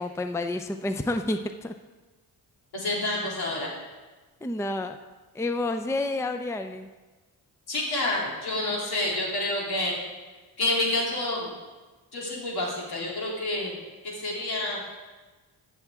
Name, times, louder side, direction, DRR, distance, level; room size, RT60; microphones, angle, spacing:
voice 1, 0.0-1.7 4.4-4.9 5.3-6.9, left 2 dB, 5° left, 8 dB, 0.5 m, -29 dB
voice 2, 2.7-3.7 7.7-10.0 10.6-11.5 12.1-13.7 14.0-14.8, left 2 dB, 70° left, -3 dB, 3.2 m, -28 dB
14.5 x 7.0 x 3.6 m, 1.3 s
cardioid pair, 70°, 39 cm